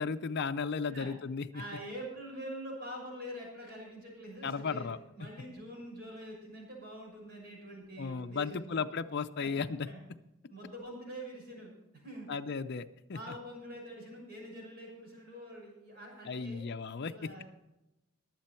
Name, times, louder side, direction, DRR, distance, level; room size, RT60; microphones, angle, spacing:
voice 1, 0.0-1.6 4.4-5.0 8.0-9.9 12.3-13.2 16.3-17.3, left 5 dB, 50° left, 8 dB, 0.5 m, -35 dB
voice 2, 1.5-8.9 9.4-10.0 10.5-11.7 12.0-12.3 13.1-16.6 17.0-17.5, equal, 45° right, -2 dB, 6.1 m, -45 dB
21.0 x 7.6 x 4.4 m, 0.92 s
head